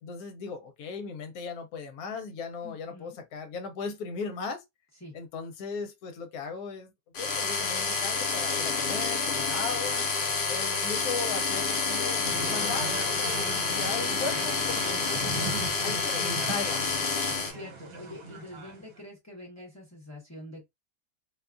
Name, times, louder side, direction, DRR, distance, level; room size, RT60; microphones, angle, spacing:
voice 1, 0.0-4.6 5.1-6.9 7.2-10.1 10.5-16.9, left 4 dB, 70° left, 1.0 m, -37 dB
voice 2, 2.6-3.2 5.0-5.1 17.4-20.6, left 1 dB, 15° left, 0.5 m, -46 dB
sound 1, 7.1-17.5, left 4 dB, 90° left, 0.4 m, -29 dB
sound 2, 12.2-19.0, right 2 dB, 65° right, 1.3 m, -38 dB
2.7 x 2.3 x 2.4 m
omnidirectional pair, 1.7 m